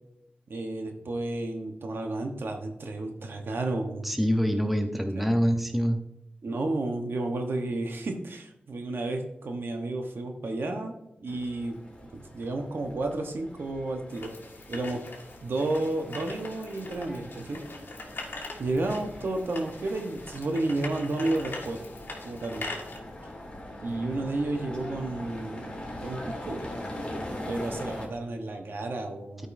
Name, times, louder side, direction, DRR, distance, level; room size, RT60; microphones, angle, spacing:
voice 1, 0.5-4.2 5.2-5.3 6.4-10.9 11.2-11.8 12.1-14.3 14.7-15.0 15.4-17.6 18.6-21.8 22.2-22.7 23.8-26.7 27.5-29.5, right 2 dB, 75° right, 4 dB, 1.1 m, -32 dB
voice 2, 4.0-6.0, equal, 5° right, 5 dB, 0.9 m, -25 dB
sound 1, 11.3-28.1, left 1 dB, 25° left, 2.3 m, -42 dB
sound 2, 14.1-23.0, left 2 dB, 70° left, 1.8 m, -42 dB
12.5 x 5.3 x 2.7 m, 0.83 s
wide cardioid pair, 80°, 4 cm